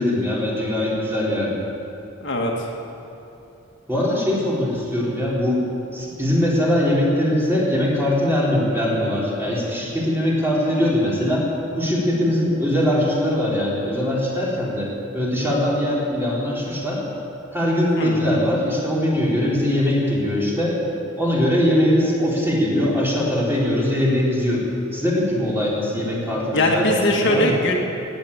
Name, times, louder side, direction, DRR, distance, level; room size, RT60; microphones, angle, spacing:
voice 1, 0.0-1.6 3.9-5.6 5.9-11.5 11.8-17.0 17.5-20.8 21.2-24.7 24.9-27.6, left 1 dB, 10° right, -6 dB, 3.9 m, -21 dB
voice 2, 2.2-2.7 18.0-18.2 26.5-27.8, left 1 dB, 60° left, 0 dB, 2.0 m, -21 dB
17.5 x 9.1 x 8.7 m, 2.9 s
head